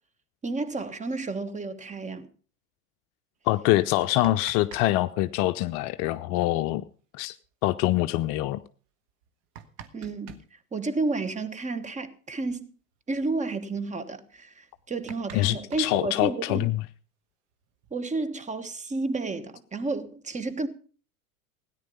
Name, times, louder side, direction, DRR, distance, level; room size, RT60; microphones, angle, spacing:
voice 1, 0.4-2.3 9.9-12.7 13.1-16.7 17.9-20.7, right 3 dB, 15° right, 1.4 m, -31 dB
voice 2, 3.5-6.8 7.1-7.4 7.6-8.6 15.3-16.8, left 16 dB, 40° left, 0.6 m, -25 dB
sound 1, 3.8-4.9 5.1-5.2 7.0-7.1 7.4-7.5 8.2-8.3 9.1-10.5 12.0-12.1 12.4-12.6 12.9-13.3 13.8-13.9 14.3-14.4 14.7-16.6 17.5-18.4, right 8 dB, 50° right, 1.6 m, -48 dB
17.0 x 10.0 x 5.4 m
figure-of-eight pair, 80°, 44 cm